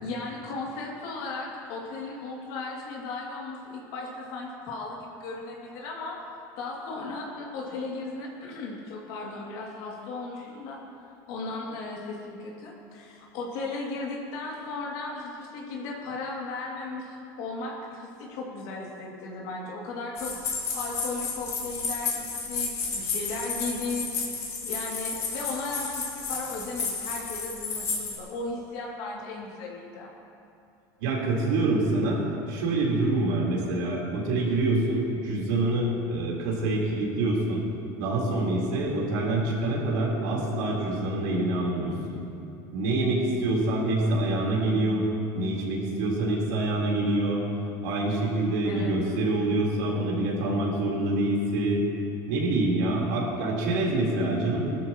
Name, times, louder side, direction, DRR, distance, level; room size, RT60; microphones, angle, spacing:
voice 1, 0.0-6.2 6.6-10.8 11.3-30.1 48.6-48.9, left 3 dB, 70° left, -3 dB, 2.6 m, -36 dB
sound 1, 20.1-28.2, left 4 dB, 35° left, 2.7 m, -32 dB
voice 2, 31.0-32.2 32.5-37.6 38.0-42.2 42.7-45.1 45.3-47.4 47.8-51.9 52.3-54.6, right 2 dB, 90° right, -4 dB, 4.0 m, -26 dB
21.0 x 13.0 x 3.1 m, 2.6 s
cardioid pair, 150°, 10 cm